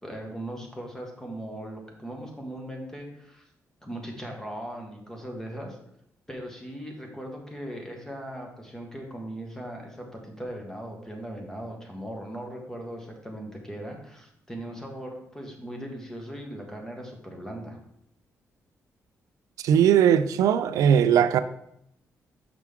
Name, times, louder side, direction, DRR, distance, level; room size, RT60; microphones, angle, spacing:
voice 1, 0.0-3.4 3.8-5.8 6.3-17.8, right 1 dB, 10° left, 1 dB, 1.5 m, -39 dB
voice 2, 19.6-21.4, right 9 dB, 90° right, 12 dB, 0.4 m, -19 dB
5.9 x 5.8 x 3.6 m, 0.74 s
cardioid pair, 115°, 6 cm